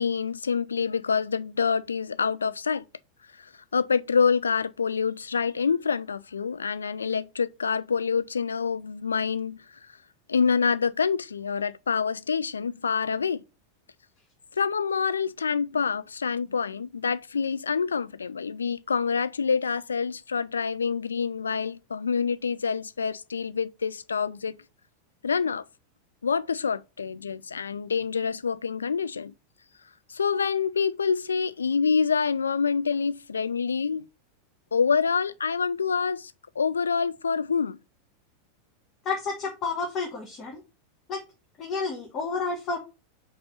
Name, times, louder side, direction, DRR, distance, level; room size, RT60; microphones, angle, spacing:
voice 1, 0.0-2.8 3.4-9.6 10.3-13.4 14.6-24.6 25.2-25.6 26.2-29.3 30.1-34.0 34.7-37.8, left 6 dB, 75° left, 0.4 m, -26 dB
voice 2, 39.0-40.6 41.1-41.2 41.6-42.8, left 4 dB, 35° left, 1.3 m, -30 dB
5.4 x 3.9 x 5.4 m
figure-of-eight pair, 90°, 0 cm